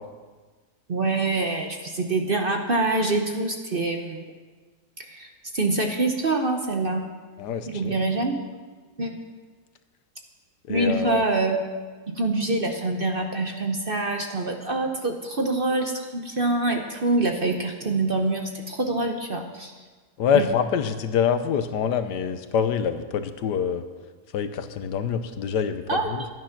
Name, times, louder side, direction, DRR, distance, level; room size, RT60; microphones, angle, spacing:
voice 1, 0.9-4.2 5.0-7.0 7.7-8.4 9.0-9.2 10.7-11.6 12.1-19.8 20.3-20.5 25.9-26.1, right 2 dB, 40° right, 4 dB, 0.9 m, -25 dB
voice 2, 7.4-8.0 10.7-11.2 20.2-23.8 24.3-26.2, left 7 dB, 80° left, 10 dB, 1.4 m, -25 dB
13.0 x 9.5 x 5.9 m, 1.4 s
omnidirectional pair, 1.8 m